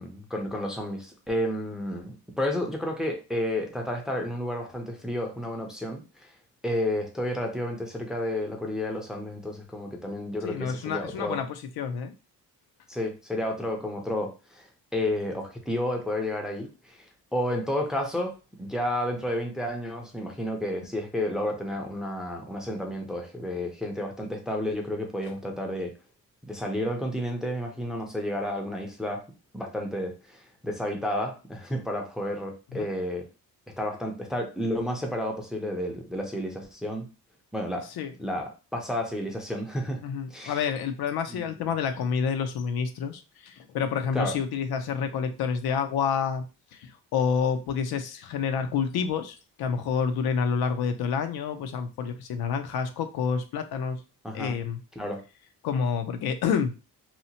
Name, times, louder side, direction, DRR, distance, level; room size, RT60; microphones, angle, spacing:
voice 1, 0.0-6.3 6.6-11.4 12.9-18.3 18.6-25.9 26.5-29.2 29.5-33.2 33.8-37.1 37.5-37.9 38.2-40.0 40.3-40.6 41.3-41.7 44.1-44.4 54.2-54.5 55.0-55.2, left 1 dB, ahead, 2 dB, 0.4 m, -31 dB
voice 2, 10.4-12.1 32.7-32.9 37.9-38.1 40.0-46.5 46.7-54.0 54.3-54.8 55.6-56.7, left 6 dB, 80° left, 8 dB, 0.5 m, -28 dB
2.8 x 2.0 x 2.7 m, 0.31 s
cardioid pair, 130°, 37 cm